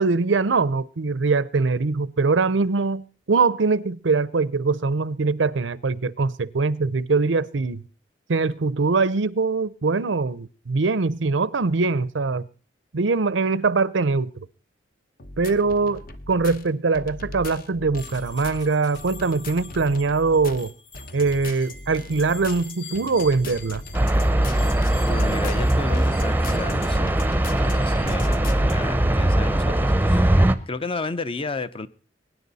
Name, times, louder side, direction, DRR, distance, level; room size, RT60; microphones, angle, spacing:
voice 1, 0.0-7.8 8.3-12.4 12.9-14.3 15.4-16.0 16.3-20.7 21.1-23.8, right 4 dB, 90° right, 0.7 m, -22 dB
sound 1, 15.2-28.7, left 2 dB, 50° left, 1.1 m, -39 dB
sound 2, 17.9-28.1, left 4 dB, 75° left, 2.2 m, -45 dB
sound 3, 23.9-30.5, right 1 dB, 10° right, 0.7 m, -20 dB
voice 2, 25.0-27.1 27.5-30.3 30.7-31.9, left 3 dB, 30° left, 0.6 m, -32 dB
23.5 x 10.0 x 4.1 m
head